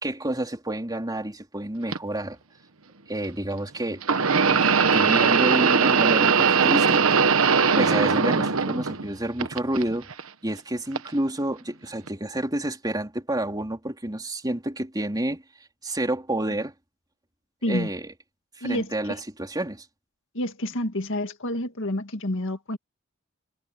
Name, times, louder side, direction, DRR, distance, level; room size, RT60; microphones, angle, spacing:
voice 1, 0.0-2.4 3.1-4.2 4.5-10.1 10.4-15.4 15.8-16.7 17.7-18.1 18.6-19.9, right 1 dB, 20° right, 3.5 m, -29 dB
sound 1, 1.9-2.0 4.0-9.1 9.4-10.2 11.0-11.1 12.1-12.2, right 5 dB, 70° right, 1.3 m, -20 dB
voice 2, 17.6-17.9 18.6-18.9 20.3-22.8, left 1 dB, 65° left, 2.0 m, -28 dB
head